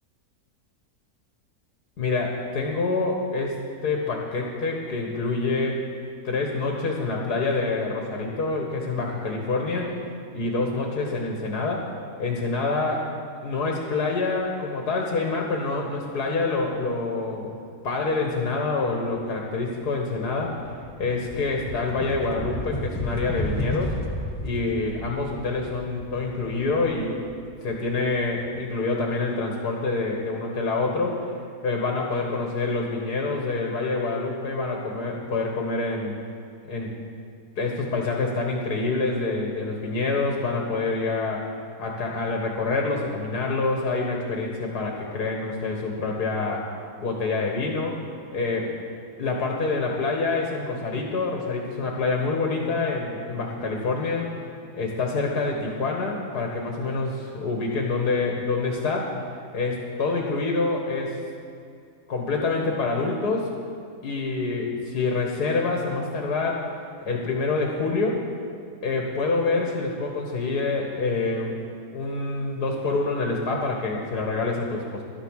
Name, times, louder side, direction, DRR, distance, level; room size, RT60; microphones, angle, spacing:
voice 1, 2.0-5.8 6.2-9.9 10.3-11.9 12.2-13.0 13.4-17.5 17.8-20.6 21.0-23.9 24.4-27.2 27.6-31.3 31.6-36.2 36.7-36.9 37.6-41.4 41.8-46.7 47.0-48.0 48.3-48.7 49.2-54.3 54.7-61.2 62.1-63.5 64.0-66.8 67.0-68.2 68.8-71.5 71.9-75.0, left 3 dB, 90° left, 0 dB, 2.1 m, -26 dB
sound 1, 19.7-28.6, left 1 dB, 15° left, 1.0 m, -33 dB
12.5 x 10.5 x 6.5 m, 2.4 s
omnidirectional pair, 1.6 m